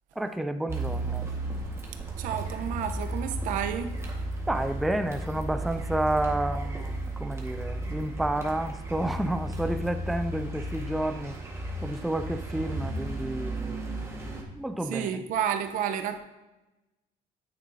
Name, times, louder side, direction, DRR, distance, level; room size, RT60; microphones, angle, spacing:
voice 1, 0.2-1.3 4.5-11.3 11.8-13.9 14.6-15.2, right 1 dB, ahead, 8 dB, 0.4 m, -30 dB
Car, 0.7-14.4, right 1 dB, 20° right, 1.5 m, -34 dB
voice 2, 2.2-3.9 14.8-16.2, right 9 dB, 70° right, 8 dB, 0.9 m, -30 dB
9.3 x 9.0 x 2.7 m, 1.0 s
cardioid pair, 130°, 14 cm